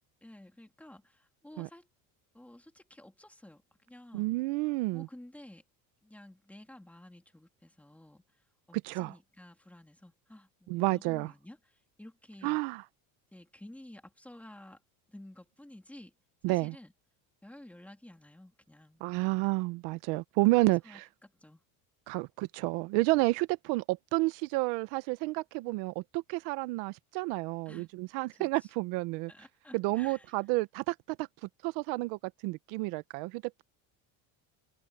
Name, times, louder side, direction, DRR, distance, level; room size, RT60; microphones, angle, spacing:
voice 1, 0.2-1.9 2.3-3.6 3.9-4.3 4.9-5.6 6.0-12.6 13.3-14.8 15.1-16.1 16.5-16.9 17.4-19.3 20.5-21.6 27.6-27.9 28.3-28.7 29.3-30.4, left 1 dB, 5° left, 2.9 m, -52 dB
voice 2, 4.1-5.1 8.8-9.1 10.7-11.3 12.4-12.8 16.4-16.7 19.0-21.1 22.1-29.3 29.7-31.3 31.6-33.6, right 23 dB, 80° right, 0.9 m, -30 dB
cardioid pair, 145°, 40 cm